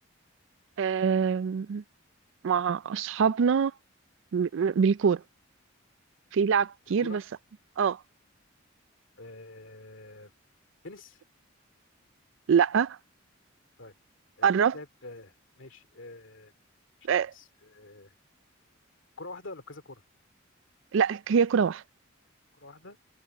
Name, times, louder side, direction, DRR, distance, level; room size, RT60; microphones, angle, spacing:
voice 1, 0.8-1.8 2.4-3.7 4.3-5.2 6.3-7.2 7.8-8.0 12.5-13.0 14.4-14.8 17.1-17.3 20.9-21.8, right 6 dB, 70° right, 0.4 m, -24 dB
voice 2, 9.2-10.3 10.8-11.2 13.8-13.9 14.4-16.5 17.3-18.1 19.2-20.0 22.5-23.0, left 2 dB, 70° left, 2.5 m, -46 dB
head